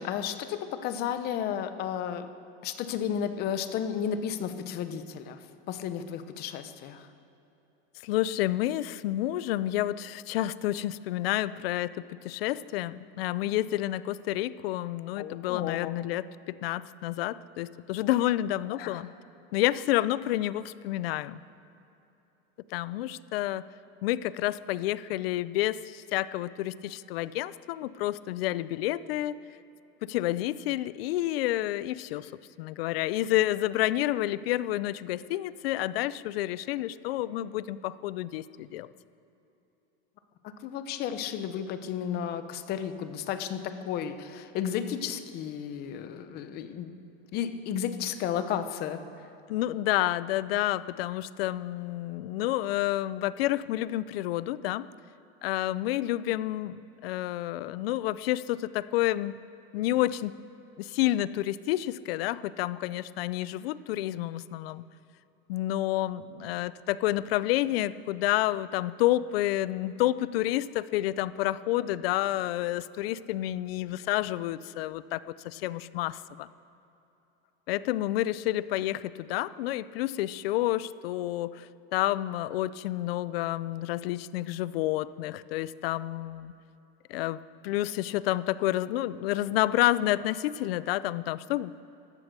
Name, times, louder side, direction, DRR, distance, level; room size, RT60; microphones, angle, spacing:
voice 1, 0.0-2.3 2.6-5.4 5.7-7.1 15.2-15.9 18.8-19.0 40.4-47.0 47.3-49.0, left 9 dB, 30° left, 10 dB, 0.8 m, -33 dB
voice 2, 8.0-19.1 19.5-21.4 22.7-23.6 24.0-29.4 30.0-32.3 32.6-38.9 49.5-54.9 55.4-59.3 59.7-60.3 60.8-64.8 65.5-76.5 77.7-86.5 87.1-91.7, left 15 dB, 75° left, 17 dB, 0.6 m, -29 dB
14.5 x 11.5 x 6.8 m, 3.0 s
supercardioid pair, 165°, 30 cm